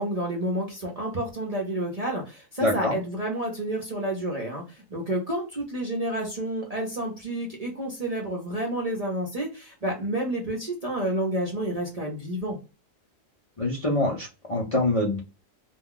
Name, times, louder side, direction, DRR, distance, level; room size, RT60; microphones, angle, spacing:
voice 1, 0.0-12.6, right 1 dB, 40° right, -2 dB, 0.6 m, -30 dB
voice 2, 2.6-2.9 13.6-15.2, left 2 dB, 35° left, -4 dB, 0.6 m, -25 dB
2.4 x 2.2 x 3.7 m, 0.31 s
omnidirectional pair, 1.4 m